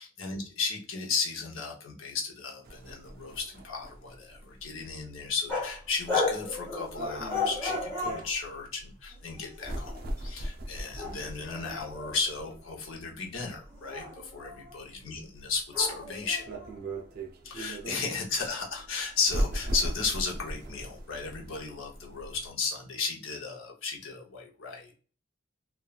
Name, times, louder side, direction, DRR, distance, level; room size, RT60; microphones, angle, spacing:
voice 1, 0.0-16.4 17.4-24.9, left 4 dB, 75° left, 0 dB, 0.8 m, -34 dB
sound 1, 2.6-22.5, right 1 dB, 50° right, 0.5 m, -39 dB
sound 2, 5.5-5.8 6.1-8.3 9.1-10.0 10.9-12.8 13.7-14.8 15.7-17.0, left 3 dB, 10° left, 1.4 m, -34 dB
3.1 x 2.3 x 2.3 m, 0.37 s
head